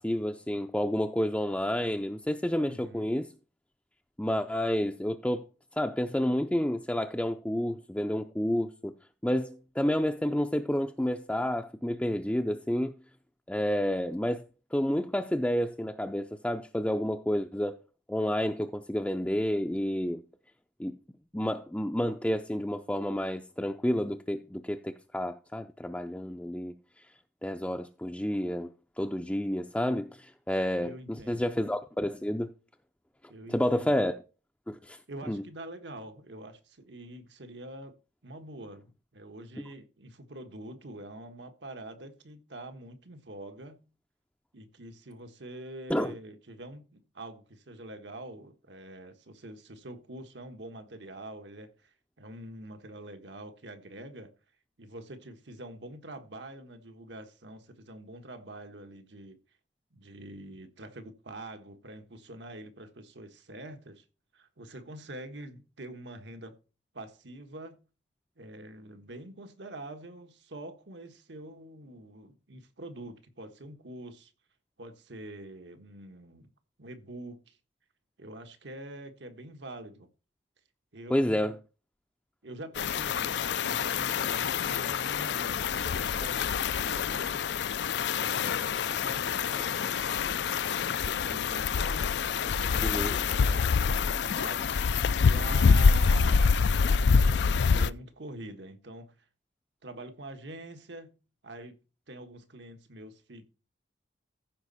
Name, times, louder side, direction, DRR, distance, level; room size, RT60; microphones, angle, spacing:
voice 1, 0.0-3.3 4.2-5.5 5.8-8.9 9.2-12.9 13.5-17.8 18.1-20.2 20.8-21.0 21.3-26.7 27.4-28.7 29.0-32.5 33.5-34.2 34.7-35.0 35.3-35.4 45.9-46.1 81.1-81.6 92.8-93.2, equal, 5° left, 0.5 m, -30 dB
voice 2, 2.6-3.1 30.8-31.5 33.3-34.1 35.1-38.0 38.2-43.8 44.5-54.3 54.8-59.4 59.9-64.0 64.3-66.6 66.9-67.8 68.4-74.3 74.8-76.5 76.8-77.6 78.2-80.1 80.9-81.5 82.4-87.4 88.1-92.1 92.4-96.6 97.3-99.3 99.8-101.2 101.4-101.8 102.1-103.5, right 1 dB, 75° right, 1.4 m, -45 dB
sound 1, 82.8-97.9, left 5 dB, 65° left, 0.4 m, -26 dB
14.5 x 5.2 x 4.1 m
head